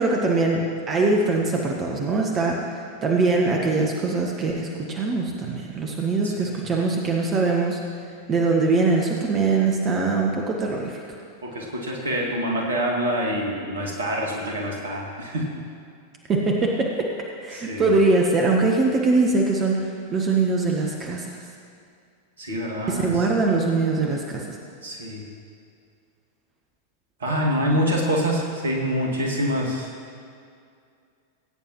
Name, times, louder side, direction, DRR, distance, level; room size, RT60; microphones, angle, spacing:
voice 1, 0.0-2.6 3.0-7.8 8.3-11.0 16.3-17.1 17.4-21.4 22.9-24.5, right 3 dB, 25° right, 0 dB, 1.2 m, -22 dB
voice 2, 6.2-6.7 11.4-15.5 17.5-18.0 22.4-23.3 24.8-25.3 27.2-29.9, equal, 65° right, -1 dB, 2.1 m, -26 dB
19.5 x 8.9 x 3.1 m, 2.3 s
figure-of-eight pair, 90°, 0 cm